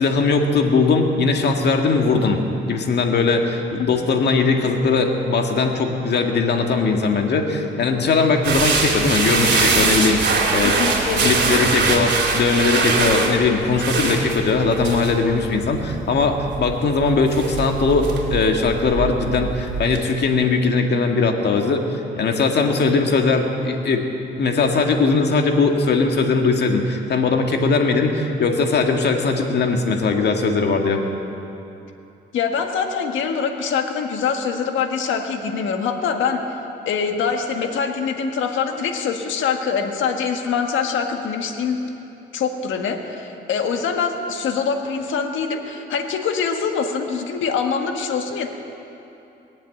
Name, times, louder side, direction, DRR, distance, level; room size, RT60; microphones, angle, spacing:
voice 1, 0.0-2.4 2.7-11.0 11.2-24.1 24.4-31.0, left 4 dB, 60° left, 3 dB, 1.8 m, -20 dB
sound 1, 8.4-20.1, right 4 dB, 60° right, 2.7 m, -23 dB
voice 2, 10.6-11.3 32.3-36.4 36.9-41.8 42.3-48.5, left 6 dB, 75° left, 4 dB, 1.6 m, -24 dB
20.5 x 7.5 x 9.2 m, 2.8 s
cardioid pair, 90°, 20 cm